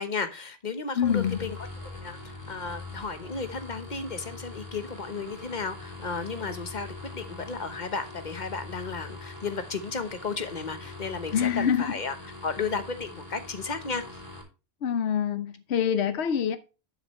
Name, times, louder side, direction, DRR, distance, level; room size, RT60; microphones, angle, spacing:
voice 1, 0.0-1.6 1.8-14.2, left 4 dB, 45° left, 1.2 m, -34 dB
voice 2, 1.0-1.4 11.3-11.9 14.8-16.6, left 8 dB, 75° left, 1.1 m, -25 dB
sound 1, 1.0-14.4, left 2 dB, 25° left, 3.3 m, -43 dB
11.5 x 6.5 x 3.1 m
omnidirectional pair, 1.1 m